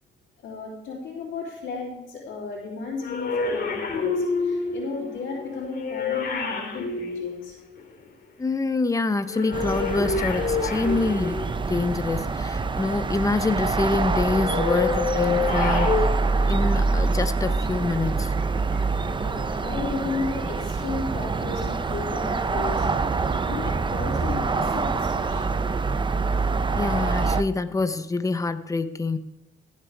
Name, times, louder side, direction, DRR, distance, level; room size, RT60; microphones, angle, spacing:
voice 1, 0.4-7.6 18.7-18.9 19.2-25.5, left 4 dB, 75° left, -4 dB, 3.4 m, -34 dB
sound 1, 3.0-8.0 9.3-11.8 14.3-16.1, left 4 dB, 50° left, 2.3 m, -28 dB
voice 2, 8.4-16.0 16.5-18.3 26.7-29.2, left 3 dB, 15° left, 10 dB, 0.8 m, -26 dB
sound 2, 9.5-27.4, right 4 dB, 25° right, 0.7 m, -25 dB
15.5 x 7.6 x 3.4 m, 0.96 s
cardioid pair, 90°, 20 cm